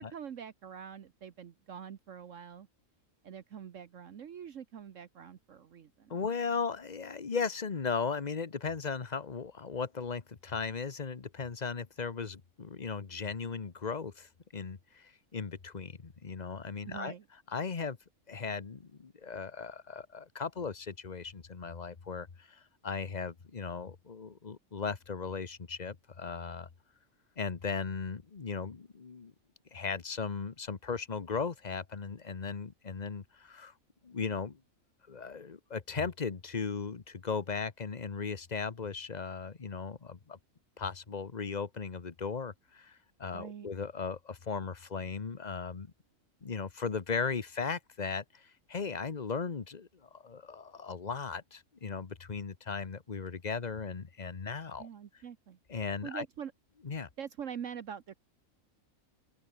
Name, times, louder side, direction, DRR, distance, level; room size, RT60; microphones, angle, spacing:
voice 1, 0.0-2.7 3.2-6.2 16.8-17.3 43.3-43.7 54.8-55.6 56.0-56.5 57.2-58.2, right 8 dB, 65° right, 1.4 m, -44 dB
voice 2, 6.1-17.1 17.5-18.0 18.3-26.7 27.4-29.3 29.7-33.7 34.0-34.6 35.1-40.4 40.8-45.9 46.4-54.9 55.7-56.2 56.8-57.1, left 5 dB, 35° left, 1.2 m, -37 dB
open air
omnidirectional pair, 1.4 m